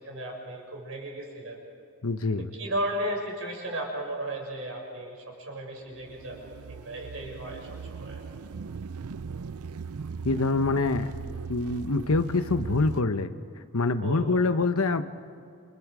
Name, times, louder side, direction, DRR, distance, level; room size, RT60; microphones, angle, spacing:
voice 1, 0.0-1.6 2.6-8.2 14.0-14.4, right 1 dB, 65° right, 0 dB, 6.8 m, -35 dB
voice 2, 2.0-2.5 10.2-11.1 11.5-13.3 13.7-15.0, left 3 dB, 80° left, 10 dB, 1.0 m, -25 dB
sound 1, 5.9-13.0, right 5 dB, 85° right, 0.5 m, -39 dB
29.5 x 28.5 x 4.9 m, 2.5 s
head